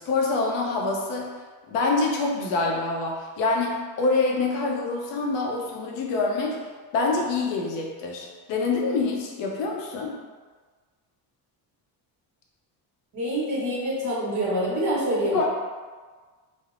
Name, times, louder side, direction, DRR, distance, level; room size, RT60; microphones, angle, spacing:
voice 1, 0.0-1.4 1.7-6.6 6.9-10.1 15.3-15.5, left 3 dB, 85° left, -1 dB, 0.7 m, -26 dB
voice 2, 13.1-15.4, right 1 dB, 45° right, -6 dB, 0.9 m, -26 dB
3.3 x 2.0 x 2.4 m, 1.4 s
cardioid pair, 155°, 43 cm